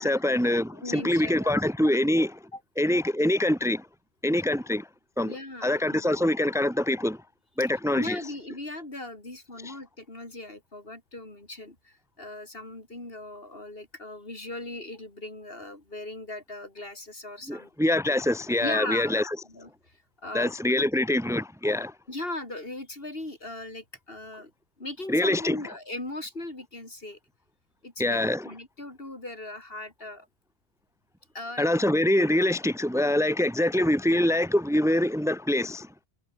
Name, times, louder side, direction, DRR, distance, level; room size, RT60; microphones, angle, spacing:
voice 1, 0.0-2.4 2.8-3.9 4.2-4.9 5.2-5.3 5.6-7.2 7.6-8.2 9.6-9.7 17.5-19.4 20.3-21.9 25.1-25.6 28.0-28.5 31.6-35.9, left 1 dB, 5° right, 1.3 m, -24 dB
voice 2, 0.7-1.6 2.5-2.6 5.2-6.1 8.0-17.7 18.6-19.1 19.5-20.5 22.1-24.5 24.8-27.2 27.8-30.3 31.3-31.7, left 2 dB, 65° left, 4.9 m, -38 dB
omnidirectional pair, 1.1 m